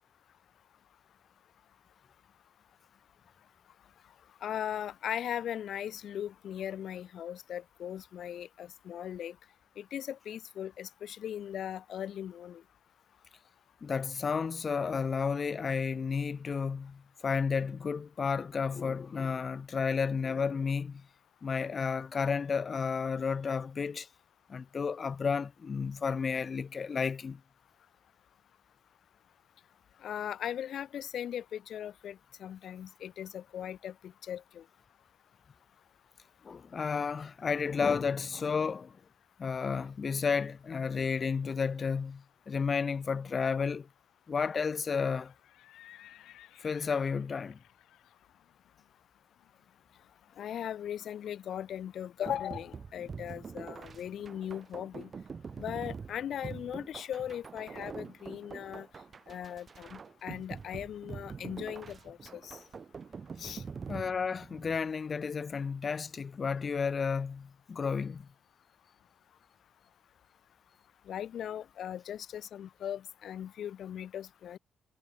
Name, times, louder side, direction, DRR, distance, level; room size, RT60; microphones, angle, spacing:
voice 1, 4.4-9.4 9.8-12.6 30.0-34.6 50.4-55.1 55.6-58.9 59.3-62.6 63.4-63.6 71.1-74.6, left 10 dB, 65° left, 1.9 m, -39 dB
voice 2, 13.8-21.1 21.4-24.1 24.5-27.4 36.4-39.0 39.4-43.9 44.3-45.3 46.6-47.6 63.9-68.3, left 5 dB, 40° left, 1.0 m, -32 dB
Livestock farm animals working animals, 44.8-50.6, left 13 dB, 85° left, 6.9 m, -59 dB
sound 1, 52.3-64.8, right 5 dB, 40° right, 0.9 m, -45 dB
cardioid pair, 90°, 0 cm